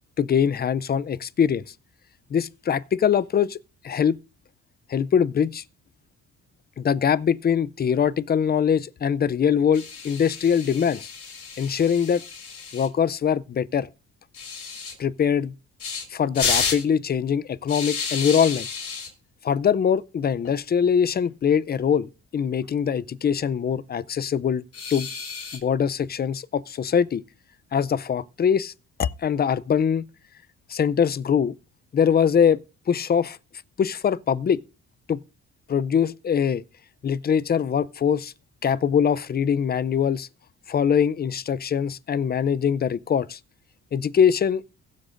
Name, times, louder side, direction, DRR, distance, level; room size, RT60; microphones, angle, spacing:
voice 1, 0.2-1.6 2.3-3.6 3.8-4.2 4.9-5.6 6.8-11.1 11.6-12.2 12.7-13.9 15.0-15.5 16.1-18.7 19.4-24.6 24.9-25.1 25.5-27.2 27.7-28.7 29.0-30.0 30.7-31.5 31.9-32.6 32.9-33.4 33.8-34.6 35.1-35.2 35.7-36.6 37.0-38.3 38.6-40.3 40.7-43.4 43.9-44.6, left 7 dB, 30° left, 0.5 m, -22 dB
sound 1, 9.7-12.9 14.3-14.9 15.8-16.0 16.3-16.8 17.7-19.1 20.3-20.5 20.8-20.9 21.2-21.3 22.6-23.1 24.7-25.6, left 5 dB, 50° left, 4.7 m, -31 dB
22.0 x 7.5 x 2.5 m
cardioid pair, 90°, 30 cm